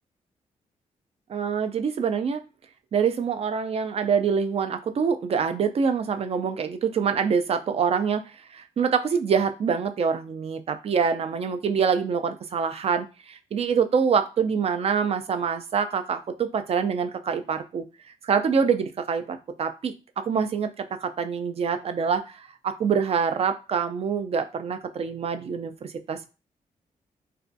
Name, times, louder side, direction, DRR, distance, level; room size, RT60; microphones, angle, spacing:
voice 1, 1.3-2.4 2.9-8.3 8.5-17.8 18.2-26.3, right 6 dB, 45° right, 8 dB, 0.4 m, -25 dB
2.3 x 2.2 x 2.6 m, 0.31 s
supercardioid pair, 60°, 14 cm